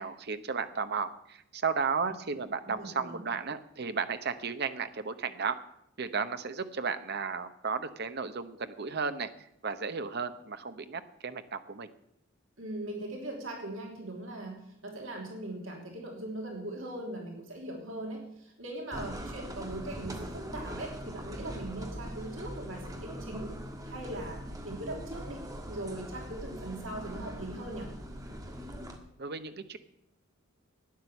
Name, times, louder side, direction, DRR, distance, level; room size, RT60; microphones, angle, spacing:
voice 1, 0.0-5.6 6.0-9.3 9.6-11.9 29.2-29.8, right 5 dB, 55° right, 10 dB, 0.9 m, -34 dB
voice 2, 2.0-2.4 2.7-3.2 12.6-23.5 23.9-27.9, right 1 dB, 70° right, 0 dB, 3.2 m, -40 dB
sound 1, 18.9-29.0, equal, 20° right, 1.6 m, -41 dB
12.5 x 9.6 x 7.1 m, 0.78 s
head